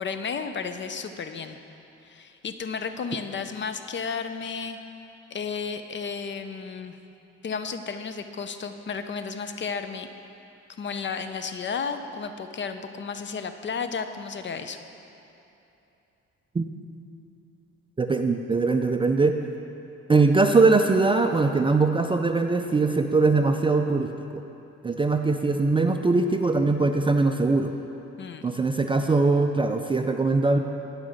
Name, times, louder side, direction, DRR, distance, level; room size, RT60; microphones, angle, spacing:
voice 1, 0.0-1.6 2.0-4.8 5.3-6.9 7.4-10.1 10.8-14.8 28.2-28.6, left 5 dB, 40° left, 8 dB, 0.5 m, -33 dB
voice 2, 18.0-19.3 20.1-24.1 24.8-27.7 28.4-30.6, right 3 dB, 20° right, 5 dB, 0.3 m, -21 dB
9.9 x 4.8 x 6.4 m, 2.9 s
cardioid pair, 90°, 30 cm